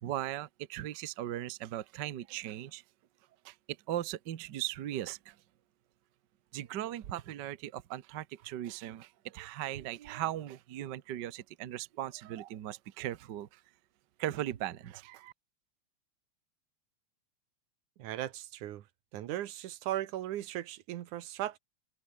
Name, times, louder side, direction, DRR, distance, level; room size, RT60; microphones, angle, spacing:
voice 1, 0.0-2.8 3.4-3.5 3.9-5.4 6.5-13.6 14.2-15.3, right 12 dB, 65° right, 1.1 m, -38 dB
voice 2, 18.0-18.8 19.1-21.6, right 13 dB, 90° right, 2.7 m, -37 dB
open air
omnidirectional pair, 3.4 m